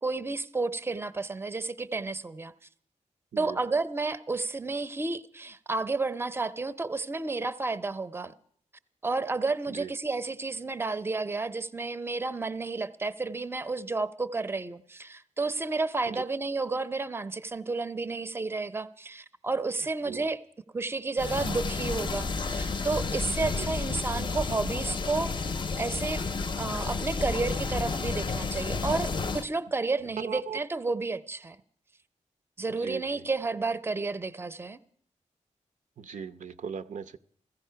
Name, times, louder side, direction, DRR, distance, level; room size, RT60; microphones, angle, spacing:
voice 1, 0.0-2.5 3.4-8.3 9.0-20.4 20.7-26.2 26.6-31.6 32.6-34.8, right 3 dB, 20° right, 13 dB, 0.6 m, -31 dB
sound 1, 21.2-29.5, left 4 dB, 40° left, 0.5 m, -31 dB
voice 2, 23.4-23.7 30.2-30.6 32.7-33.3 36.0-37.2, right 7 dB, 80° right, 10 dB, 0.6 m, -39 dB
15.5 x 14.5 x 5.7 m, 0.62 s
wide cardioid pair, 115°, 13 cm